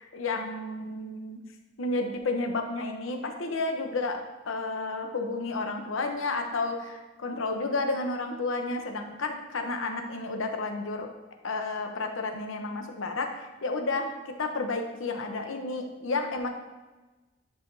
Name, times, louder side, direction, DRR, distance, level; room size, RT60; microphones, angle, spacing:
voice 1, 0.0-1.4 1.8-4.2 4.4-11.1 11.4-16.5, left 3 dB, 85° left, 4 dB, 0.8 m, -31 dB
10.5 x 4.9 x 2.7 m, 1.2 s
head